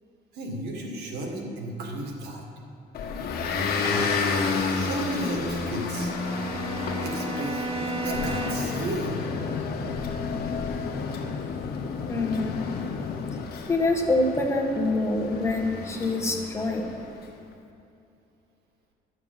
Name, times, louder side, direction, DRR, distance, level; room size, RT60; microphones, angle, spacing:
voice 1, 0.3-2.4 3.8-4.1 4.7-6.1 7.0-9.2, right 1 dB, 75° right, 1 dB, 1.9 m, -34 dB
Motor vehicle (road) / Engine, 2.9-17.2, left 4 dB, 65° left, 1.4 m, -31 dB
Bowed string instrument, 5.8-8.9, right 3 dB, 35° right, 0.7 m, -34 dB
sound 1, 8.1-13.5, left 6 dB, 50° left, 0.7 m, -34 dB
voice 2, 12.1-12.7 13.7-16.9, left 2 dB, 15° left, 0 dB, 1.4 m, -25 dB
11.0 x 6.6 x 7.4 m, 2.6 s
cardioid pair, 110°, 17 cm